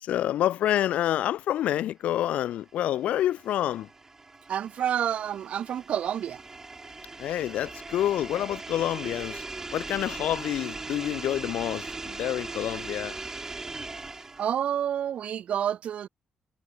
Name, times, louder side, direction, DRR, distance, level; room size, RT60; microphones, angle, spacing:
voice 1, 0.0-3.9 7.2-9.4 9.7-13.2, left 12 dB, 85° left, 0.9 m, -28 dB
sound 1, 2.7-14.6, right 3 dB, 20° right, 2.2 m, -39 dB
voice 2, 4.5-6.4 14.4-16.1, right 9 dB, 65° right, 1.4 m, -29 dB
cardioid pair, 120°, 2 cm